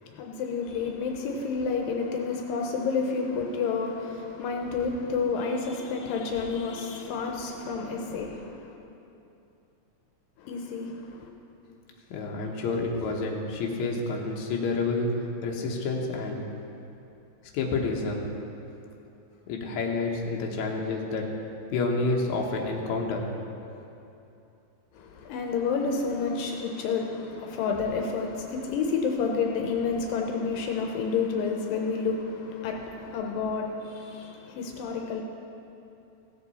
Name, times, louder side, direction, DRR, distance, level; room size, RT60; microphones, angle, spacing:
voice 1, 0.0-8.8 10.4-11.3 24.9-35.2, left 5 dB, 80° left, 2 dB, 2.5 m, -30 dB
voice 2, 12.1-15.1 15.4-16.5 17.5-18.3 19.5-21.2 21.7-23.2, left 3 dB, 65° left, -1 dB, 2.2 m, -29 dB
16.5 x 7.8 x 4.1 m, 2.8 s
omnidirectional pair, 4.1 m